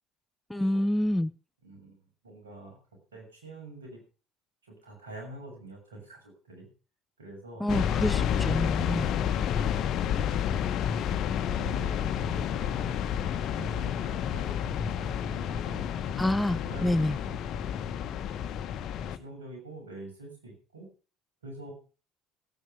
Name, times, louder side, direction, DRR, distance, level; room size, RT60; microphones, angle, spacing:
voice 1, 0.5-1.3 7.6-9.1 16.2-17.2, left 1 dB, 5° left, 16 dB, 0.7 m, -27 dB
voice 2, 1.6-2.8 3.1-4.0 4.6-6.7 7.2-7.7 8.3-10.4 11.1-15.8 16.6-17.4 18.0-20.9 21.4-21.7, right 2 dB, 85° right, 1 dB, 6.5 m, -46 dB
sound 1, 7.7-19.2, left 9 dB, 55° left, 1.1 m, -30 dB
16.0 x 9.2 x 5.6 m, 0.36 s
hypercardioid pair, 60°, 0 cm